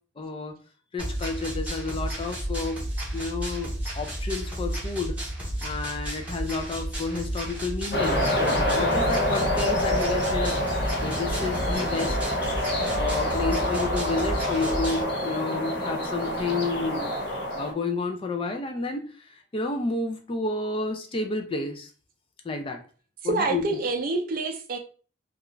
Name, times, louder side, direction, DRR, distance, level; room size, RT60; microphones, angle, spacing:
voice 1, 0.2-0.5 0.9-2.8 3.1-5.2 5.6-10.6 11.0-12.2 12.9-17.1 17.6-21.9 22.4-22.8 23.2-23.8, left 3 dB, 25° left, 0.3 m, -31 dB
sound 1, 1.0-15.0, right 1 dB, 5° right, 0.7 m, -32 dB
sound 2, 7.9-17.7, left 1 dB, 60° left, 0.8 m, -27 dB
voice 2, 23.2-24.8, right 3 dB, 45° right, 0.4 m, -27 dB
2.3 x 2.3 x 3.0 m
head